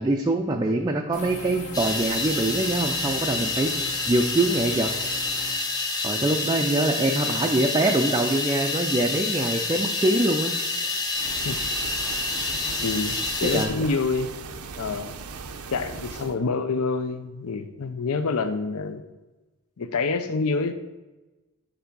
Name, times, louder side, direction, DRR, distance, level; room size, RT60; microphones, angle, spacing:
voice 1, 0.0-3.7 4.1-4.9 6.0-10.5 13.4-13.7, right 2 dB, 20° right, 2 dB, 0.4 m, -24 dB
sound 1, 1.1-5.5, left 3 dB, 35° left, 1.4 m, -39 dB
sound 2, 1.7-13.7, left 3 dB, 15° left, 0.8 m, -28 dB
sound 3, 11.1-16.4, right 4 dB, 75° right, 0.6 m, -38 dB
voice 2, 12.8-14.3 14.8-15.2 15.7-19.0 19.8-20.7, left 4 dB, 70° left, 10 dB, 0.5 m, -27 dB
7.0 x 3.4 x 5.3 m, 1.1 s
head